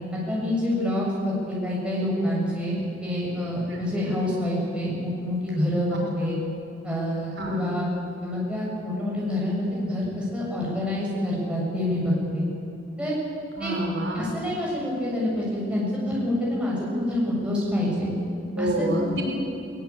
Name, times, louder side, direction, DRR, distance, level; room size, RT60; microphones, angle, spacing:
voice 1, 0.1-6.4 6.8-7.9 8.2-12.4 13.0-13.1 13.6-13.8 14.1-18.1 18.6-18.9, left 1 dB, 5° right, -5 dB, 7.1 m, -27 dB
voice 2, 13.6-14.2 18.6-19.2, right 1 dB, 75° right, -2 dB, 5.6 m, -28 dB
21.5 x 19.5 x 8.6 m, 2.8 s
head